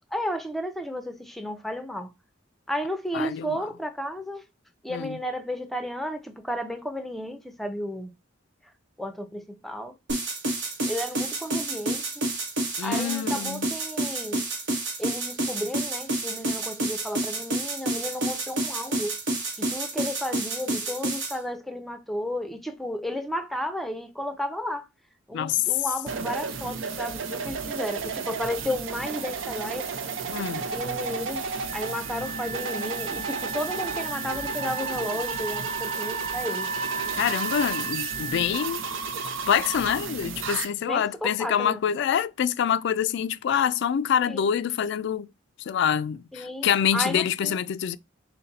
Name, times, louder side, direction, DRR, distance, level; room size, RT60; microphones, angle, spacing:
voice 1, 0.1-2.1 2.7-4.4 4.8-8.1 9.0-9.9 10.9-12.2 12.8-14.4 15.0-19.2 19.6-24.9 25.3-29.9 30.7-36.7 40.9-41.8 44.3-44.4 46.3-47.6, left 1 dB, ahead, 0.5 m, -33 dB
voice 2, 3.1-3.6 4.9-5.2 12.8-13.7 25.3-25.6 30.3-30.7 37.2-38.8 39.5-45.3 45.6-48.0, left 8 dB, 65° left, 0.3 m, -26 dB
sound 1, 10.1-21.4, right 2 dB, 70° right, 1.0 m, -29 dB
sound 2, 26.1-40.7, right 5 dB, 85° right, 0.5 m, -32 dB
Wind instrument woodwind instrument, 31.7-38.7, right 4 dB, 45° right, 1.2 m, -36 dB
4.0 x 2.1 x 3.9 m
head